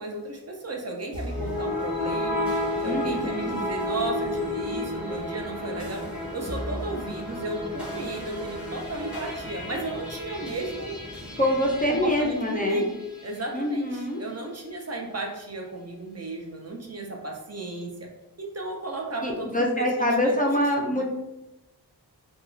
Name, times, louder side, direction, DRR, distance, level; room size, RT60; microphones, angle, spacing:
voice 1, 0.0-2.5 2.8-6.1 6.3-11.0 11.9-18.1 18.4-20.5 20.9-21.0, right 2 dB, 40° right, 1 dB, 0.4 m, -34 dB
sound 1, 1.1-13.4, left 1 dB, ahead, 0.9 m, -32 dB
voice 2, 2.8-3.6 11.4-12.8 13.5-14.2 19.2-21.0, left 1 dB, 20° left, -1 dB, 0.4 m, -25 dB
2.3 x 2.2 x 3.0 m, 0.95 s
wide cardioid pair, 75°, 40 cm